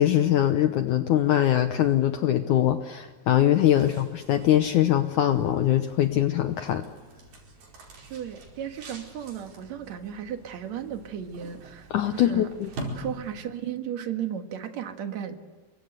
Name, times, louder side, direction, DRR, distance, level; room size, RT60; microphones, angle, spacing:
voice 1, 0.0-6.8 11.9-12.7, left 12 dB, 70° left, 8 dB, 2.0 m, -22 dB
sound 1, 3.4-13.7, right 1 dB, 85° right, 6.8 m, -44 dB
voice 2, 8.1-12.5 13.0-15.4, right 9 dB, 55° right, 6 dB, 2.6 m, -35 dB
29.0 x 23.5 x 8.2 m, 1.4 s
omnidirectional pair, 4.3 m